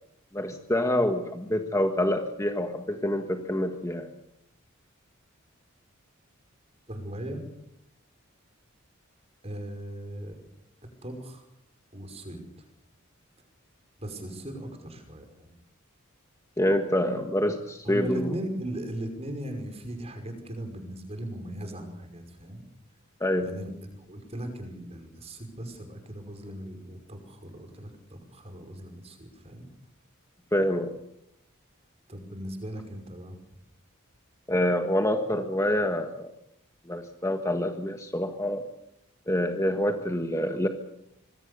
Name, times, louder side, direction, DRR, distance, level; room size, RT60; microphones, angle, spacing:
voice 1, 0.3-4.1 16.6-18.3 23.2-23.5 30.5-30.9 34.5-36.3 36.9-38.6 39.3-40.7, left 1 dB, 15° left, 5 dB, 1.6 m, -26 dB
voice 2, 6.9-7.4 9.4-10.4 10.8-11.5 11.9-12.6 14.0-15.5 17.8-22.6 23.4-29.7 32.1-33.4, right 1 dB, 30° right, 6 dB, 5.6 m, -38 dB
26.0 x 22.0 x 6.9 m, 0.78 s
head